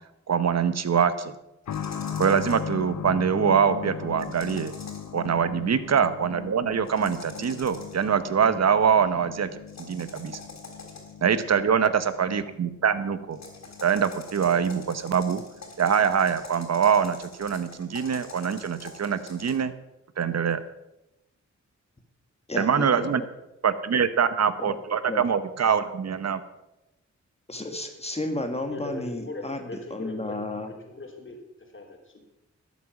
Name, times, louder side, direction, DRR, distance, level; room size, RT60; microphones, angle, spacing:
voice 1, 0.3-1.3 2.2-4.7 5.1-9.5 9.8-10.4 11.2-13.4 13.8-15.4 15.8-19.7 20.2-20.6 22.6-23.2 23.6-26.4, right 7 dB, 60° right, 13 dB, 1.0 m, -24 dB
sound 1, 1.7-16.1 16.4-16.5 17.4-17.5, left 8 dB, 90° left, 0.9 m, -39 dB
sound 2, 1.7-2.7 4.2-5.2 6.8-8.1 9.7-11.2 13.3-19.5, left 3 dB, 65° left, 3.4 m, -45 dB
voice 2, 22.5-23.3 24.6-24.8 25.1-25.3 27.5-29.6 29.9-30.7, left 2 dB, 20° left, 5 dB, 1.6 m, -32 dB
voice 3, 28.6-30.4 30.8-32.2, left 2 dB, 40° left, 1 dB, 3.1 m, -40 dB
12.5 x 8.3 x 6.0 m, 0.92 s
wide cardioid pair, 85°, 29 cm